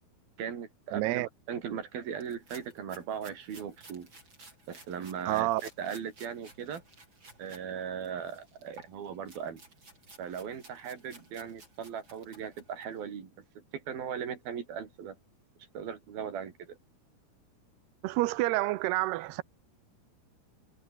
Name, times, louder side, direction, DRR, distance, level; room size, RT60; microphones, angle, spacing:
voice 1, 0.4-4.1 4.7-6.8 7.4-9.6 10.2-13.3 13.6-15.2 15.7-16.8, right 7 dB, 60° right, 5.1 m, -38 dB
voice 2, 0.9-1.3 5.3-5.6 18.0-19.4, right 18 dB, 80° right, 2.8 m, -28 dB
sound 1, 2.1-7.6 8.0-13.0, right 2 dB, 25° right, 8.1 m, -55 dB
omnidirectional pair, 4.9 m